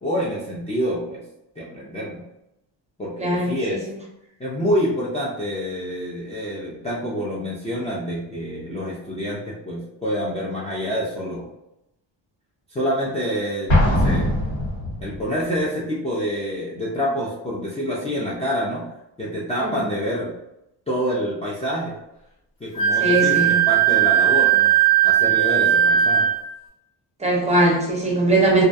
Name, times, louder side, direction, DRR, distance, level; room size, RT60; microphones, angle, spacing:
voice 1, 0.0-1.2 1.6-2.2 3.0-3.8 4.4-11.5 12.7-14.3 15.0-18.9 19.2-20.4 20.9-22.0 22.6-26.3, equal, 15° left, -7 dB, 0.4 m, -27 dB
voice 2, 3.2-3.5 23.0-23.6 27.2-28.6, right 2 dB, 15° right, -2 dB, 0.7 m, -19 dB
Explosion, 13.7-15.3, left 1 dB, 75° left, 1.1 m, -20 dB
Wind instrument woodwind instrument, 22.8-26.5, right 10 dB, 35° left, 0.9 m, -18 dB
2.3 x 2.2 x 2.6 m, 0.87 s
cardioid pair, 100°, 46 cm